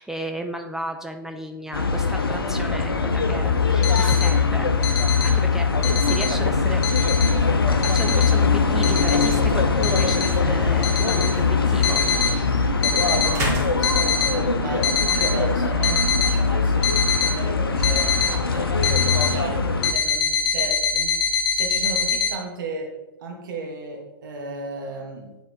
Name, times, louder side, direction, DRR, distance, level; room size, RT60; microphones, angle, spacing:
voice 1, 0.0-6.8 7.8-12.5, right 1 dB, 5° right, 3 dB, 0.3 m, -34 dB
sound 1, 1.7-19.9, left 5 dB, 75° left, 0.7 m, -21 dB
sound 2, 3.6-4.3 4.8-5.3 5.7-6.3 6.8-7.3 7.8-8.3 8.8-9.3 9.8-10.3 10.8-11.3 11.8-12.3 12.8-13.3 13.7-14.3 14.8-15.3 15.8-16.3 16.8-17.3 17.8-18.3 18.8-19.3 19.8-22.3, left 6 dB, 40° left, 1.1 m, -23 dB
sound 3, 6.5-19.2, right 1 dB, 20° right, 1.7 m, -39 dB
voice 2, 12.8-18.1 18.4-21.2 21.5-22.9 23.2-25.3, right 2 dB, 60° right, 2 dB, 1.7 m, -34 dB
9.4 x 3.9 x 3.6 m, 1.0 s
figure-of-eight pair, 110°, 12 cm